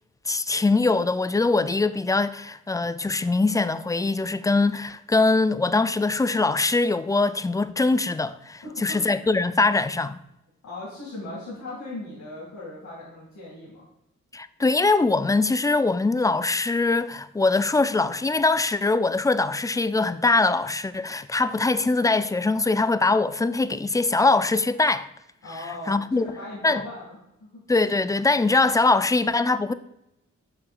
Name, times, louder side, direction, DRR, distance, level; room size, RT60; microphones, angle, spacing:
voice 1, 0.3-10.2 14.3-25.1 25.9-26.3 26.6-26.8 27.7-29.7, left 3 dB, 10° left, 0.3 m, -22 dB
voice 2, 8.6-9.1 10.6-13.8 25.4-27.6, left 2 dB, 70° left, 2.3 m, -38 dB
6.6 x 5.9 x 2.4 m
cardioid pair, 50°, 30 cm